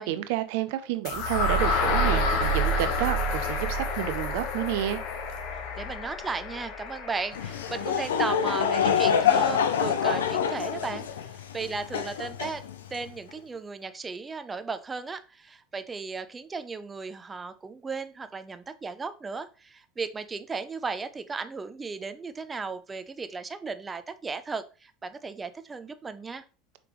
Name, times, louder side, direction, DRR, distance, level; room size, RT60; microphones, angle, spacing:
voice 1, 0.0-5.0, right 12 dB, 70° right, 0.5 m, -30 dB
sound 1, 1.0-9.0, left 1 dB, 65° left, 0.9 m, -29 dB
voice 2, 5.8-12.6 12.9-26.4, right 4 dB, 20° right, 0.5 m, -35 dB
Laughter / Crowd, 7.3-13.1, left 7 dB, 90° left, 0.5 m, -26 dB
5.0 x 3.4 x 3.0 m
hypercardioid pair, 90°, 0 cm